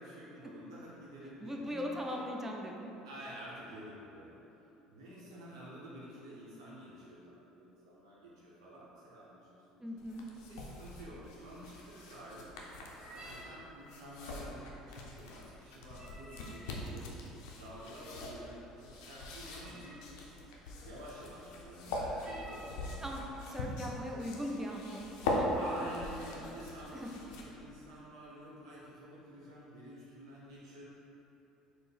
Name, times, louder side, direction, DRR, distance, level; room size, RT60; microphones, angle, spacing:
voice 1, 0.0-2.2 3.0-4.4 4.9-9.8 10.4-12.5 13.0-17.2 17.5-20.2 20.8-23.0 25.5-30.8, equal, 80° right, -7 dB, 0.7 m, -49 dB
voice 2, 1.4-2.9 9.8-10.2 23.0-25.5 26.9-27.1, equal, 15° right, 0 dB, 0.5 m, -39 dB
sound 1, 10.0-27.7, left 1 dB, 70° left, 0.4 m, -41 dB
sound 2, 12.8-13.6 15.9-16.7 19.4-20.0 22.2-23.1 23.8-23.9 24.3-24.6 25.1-25.2 25.6-26.3, right 1 dB, 30° right, 0.9 m, -53 dB
4.3 x 2.0 x 3.2 m, 2.9 s
hypercardioid pair, 65°, 3 cm